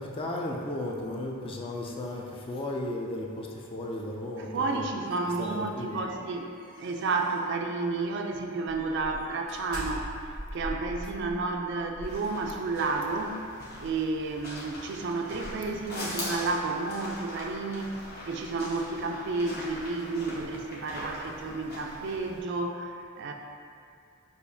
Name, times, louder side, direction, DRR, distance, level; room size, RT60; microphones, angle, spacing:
voice 1, 0.0-4.9 5.4-6.0, left 1 dB, 25° left, -1 dB, 0.4 m, -35 dB
voice 2, 4.4-6.5 6.8-13.5 13.8-17.9 18.2-23.3, right 3 dB, 60° right, 3 dB, 0.3 m, -31 dB
sound 1, 4.8-7.5 8.0-8.2 8.7-12.9, equal, 70° left, 1.1 m, -42 dB
sound 2, 12.0-22.4, left 1 dB, 50° left, 1.0 m, -41 dB
6.5 x 2.4 x 2.6 m, 2.3 s
head